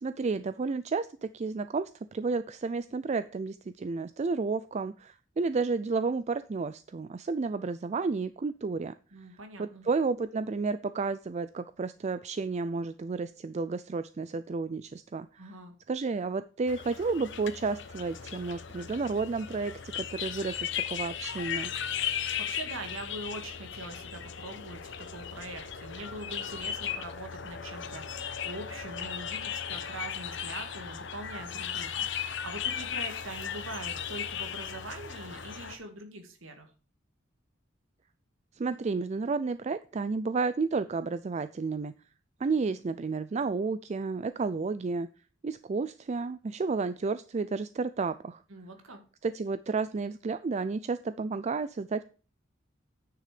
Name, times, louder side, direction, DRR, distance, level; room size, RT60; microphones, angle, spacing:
voice 1, 0.0-8.9 9.6-15.5 15.9-21.7 38.5-41.9 42.4-45.1 45.4-48.4 49.2-52.0, right 4 dB, 35° right, 13 dB, 0.4 m, -31 dB
voice 2, 9.1-9.8 15.4-15.7 22.5-32.1 32.4-36.7 48.5-49.0, right 2 dB, 90° right, 6 dB, 2.0 m, -43 dB
sound 1, 16.7-35.8, left 8 dB, 60° left, 1.0 m, -37 dB
9.5 x 6.6 x 5.0 m, 0.37 s
head